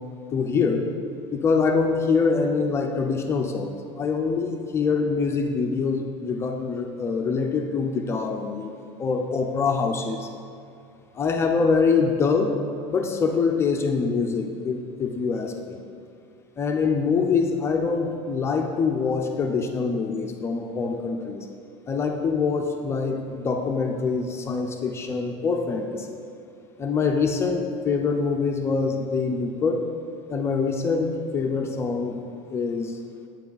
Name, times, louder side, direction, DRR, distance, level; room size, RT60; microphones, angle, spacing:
voice 1, 0.3-0.9 1.3-8.7 9.0-10.3 11.1-12.5 12.9-15.8 16.6-21.5 21.9-26.2 26.8-29.8 30.3-32.2 32.5-33.0, left 5 dB, 15° left, 3 dB, 0.4 m, -24 dB
8.6 x 5.8 x 3.9 m, 2.5 s
cardioid pair, 175°, 15 cm